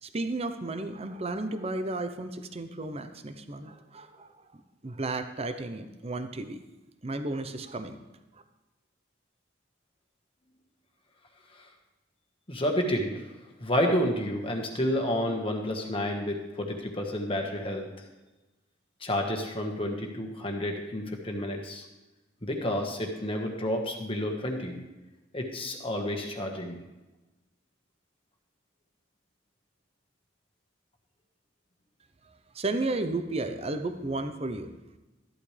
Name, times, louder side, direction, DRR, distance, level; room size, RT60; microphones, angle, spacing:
voice 1, 0.0-6.6 7.0-8.0 8.3-8.4 32.2-34.7, right 2 dB, 30° right, 9 dB, 0.8 m, -33 dB
voice 2, 12.5-13.2 13.6-17.8 19.0-21.8 22.4-24.8 25.3-26.8, equal, 30° left, 2 dB, 1.5 m, -30 dB
13.5 x 11.5 x 3.3 m, 1.1 s
head